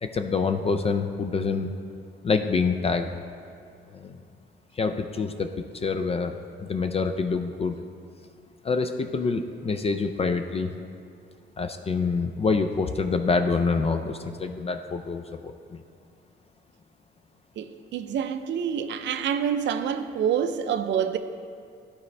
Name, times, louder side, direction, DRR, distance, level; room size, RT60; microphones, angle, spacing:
voice 1, 0.0-1.7 2.2-3.2 3.9-4.2 4.7-7.8 8.6-10.7 11.6-15.8, left 4 dB, 30° left, 0.4 m, -26 dB
voice 2, 17.6-21.2, right 8 dB, 65° right, 0.5 m, -27 dB
12.0 x 4.2 x 3.3 m
cardioid pair, 90°, 20 cm